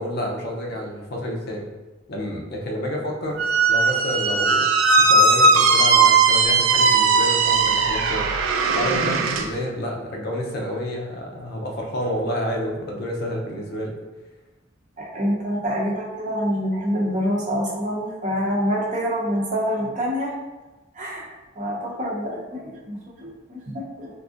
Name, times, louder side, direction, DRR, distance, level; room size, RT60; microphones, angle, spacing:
voice 1, 0.0-1.6 2.1-3.4 3.7-4.7 5.0-8.3 8.7-14.0, equal, 55° left, -1 dB, 0.6 m, -29 dB
Squeak, 3.4-9.5, right 4 dB, 75° right, 0.4 m, -18 dB
voice 2, 15.0-20.3 20.9-21.3 21.6-24.2, equal, 40° right, -3 dB, 0.7 m, -26 dB
3.8 x 2.6 x 2.4 m, 1.1 s
head